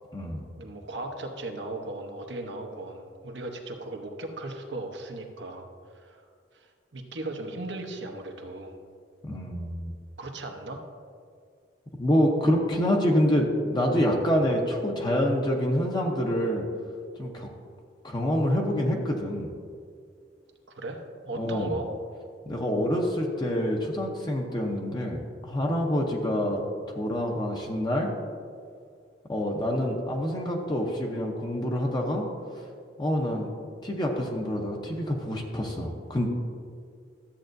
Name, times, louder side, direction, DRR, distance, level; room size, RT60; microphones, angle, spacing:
voice 1, 0.5-5.7 5.9-6.2 6.5-6.7 6.9-8.8 10.2-10.8 20.7-21.0 21.2-21.9, right 2 dB, 80° right, 3 dB, 1.0 m, -37 dB
voice 2, 9.2-9.9 12.0-16.6 17.2-17.5 18.0-19.5 21.3-21.8 22.5-26.6 26.9-28.1 29.3-32.3 32.5-32.7 33.0-33.5 33.8-36.3, equal, 25° left, 0 dB, 0.8 m, -26 dB
13.0 x 7.8 x 2.6 m, 2.2 s
head